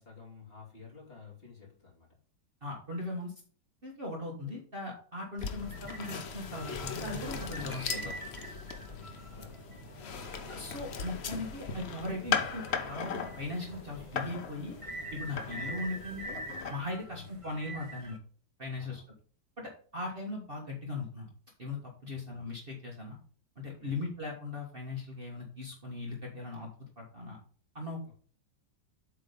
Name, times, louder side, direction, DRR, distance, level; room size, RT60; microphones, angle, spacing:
voice 1, 0.0-2.1 8.6-10.3 15.3-15.5 17.0-17.3 18.7-19.0 22.1-22.2 23.8-24.0 28.0-28.1, left 6 dB, 30° left, -3 dB, 2.9 m, -53 dB
voice 2, 2.6-3.3 3.8-8.1 10.5-14.8 15.1-16.4 16.7-18.2 18.6-19.0 19.6-21.3 21.6-23.2 23.5-26.7 27.0-27.4 27.7-28.1, left 2 dB, 35° right, -1 dB, 1.6 m, -39 dB
sound 1, 5.4-16.7, left 6 dB, 50° left, 0.8 m, -38 dB
sound 2, 5.6-18.2, right 2 dB, 55° right, 0.3 m, -46 dB
8.0 x 3.8 x 5.2 m, 0.43 s
omnidirectional pair, 1.9 m